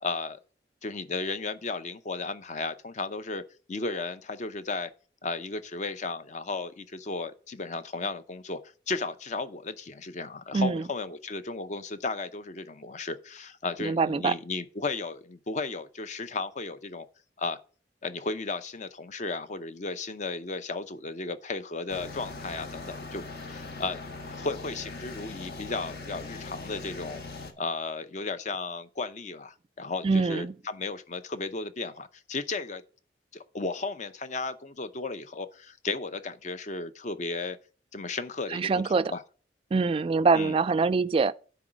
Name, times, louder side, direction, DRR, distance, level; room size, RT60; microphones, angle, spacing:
voice 1, 0.0-0.4 0.8-3.4 3.7-4.9 5.2-8.6 8.9-17.1 17.4-17.6 18.0-24.0 24.3-27.2 27.6-32.8 33.3-37.6 37.9-39.2 40.3-40.5, left 3 dB, 45° left, 0.6 m, -34 dB
voice 2, 10.5-10.8 13.8-14.4 30.0-30.5 38.5-39.1 39.7-41.3, right 4 dB, 30° right, 0.3 m, -24 dB
sound 1, 21.9-27.5, left 3 dB, 65° left, 1.3 m, -40 dB
9.9 x 3.9 x 6.3 m
head